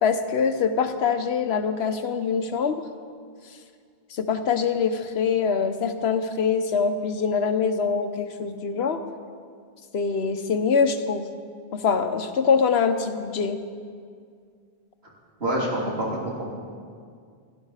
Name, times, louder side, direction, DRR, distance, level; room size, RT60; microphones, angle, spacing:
voice 1, 0.0-2.8 4.1-9.0 9.9-11.3 11.7-13.6, left 6 dB, 80° left, 9 dB, 1.1 m, -24 dB
voice 2, 15.4-16.6, right 1 dB, 80° right, -4 dB, 3.3 m, -27 dB
16.5 x 10.5 x 5.6 m, 2.1 s
omnidirectional pair, 1.0 m